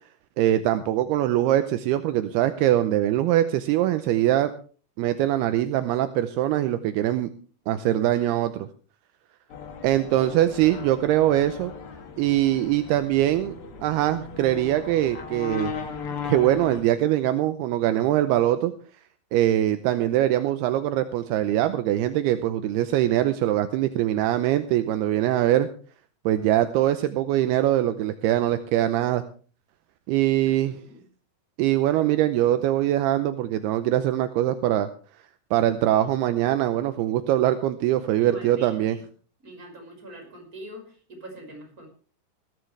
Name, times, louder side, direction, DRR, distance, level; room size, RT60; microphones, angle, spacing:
voice 1, 0.4-4.5 5.0-7.3 7.7-8.7 9.8-11.7 12.2-13.6 13.8-15.7 16.2-18.7 19.3-25.7 26.3-29.2 30.1-30.8 31.6-34.9 35.5-39.0, right 13 dB, 80° right, 10 dB, 2.4 m, -22 dB
voice 2, 8.1-8.4 30.4-31.0 38.2-39.0 39.4-41.9, right 1 dB, 20° right, 1 dB, 5.6 m, -43 dB
sound 1, 9.5-16.8, left 5 dB, 55° left, 1.6 m, -37 dB
18.0 x 14.5 x 3.3 m, 0.40 s
omnidirectional pair, 5.4 m